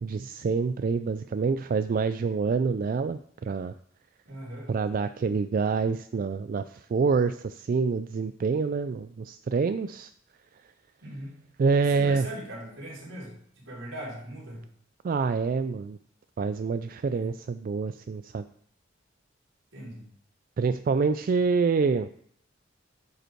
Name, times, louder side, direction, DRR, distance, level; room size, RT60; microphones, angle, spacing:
voice 1, 0.0-3.7 4.7-10.1 11.6-12.3 15.0-16.0 16.4-18.4 20.6-22.1, right 5 dB, 45° right, 11 dB, 0.3 m, -26 dB
voice 2, 4.3-4.7 11.0-11.3 11.9-13.3 13.7-14.6 17.0-17.3 19.7-20.1, equal, 85° right, -4 dB, 4.0 m, -39 dB
10.5 x 5.2 x 4.5 m, 0.64 s
head